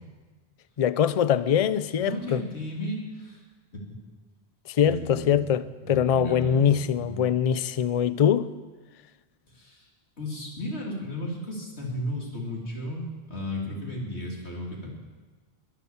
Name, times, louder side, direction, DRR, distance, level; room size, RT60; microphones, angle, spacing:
voice 1, 0.8-2.4 4.7-8.5, left 8 dB, 45° left, 0.5 m, -23 dB
voice 2, 2.0-3.4 3.7-3.8 4.8-5.4 5.8-6.8 7.0-7.2 9.5-9.9 10.2-14.9, left 1 dB, 80° left, 3.2 m, -34 dB
21.5 x 8.4 x 7.1 m
omnidirectional pair, 1.1 m